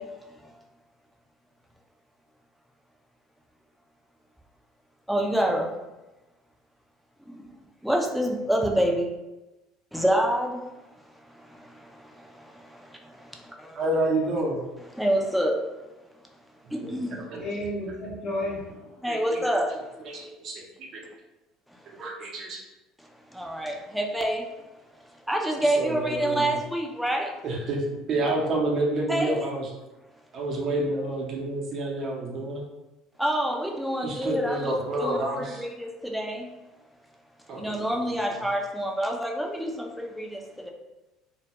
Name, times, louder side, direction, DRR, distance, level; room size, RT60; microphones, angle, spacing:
voice 1, 5.1-5.7 7.8-9.1 9.9-10.5 15.0-15.6 16.9-17.1 19.0-19.7 23.4-24.4 25.3-27.3 29.1-29.5 33.2-36.5 37.6-40.4, right 1 dB, ahead, 0 dB, 0.4 m, -26 dB
voice 2, 13.8-14.6 16.8-17.6 19.1-19.4 20.0-21.0 22.0-22.6 25.8-26.5 27.4-29.7 30.3-32.6 34.0-35.6 37.5-38.1, right 2 dB, 55° right, -1 dB, 0.7 m, -29 dB
voice 3, 17.3-18.9 23.4-23.5, left 1 dB, 60° left, -6 dB, 0.8 m, -32 dB
2.2 x 2.1 x 2.8 m, 1.0 s
hypercardioid pair, 75°, 0 cm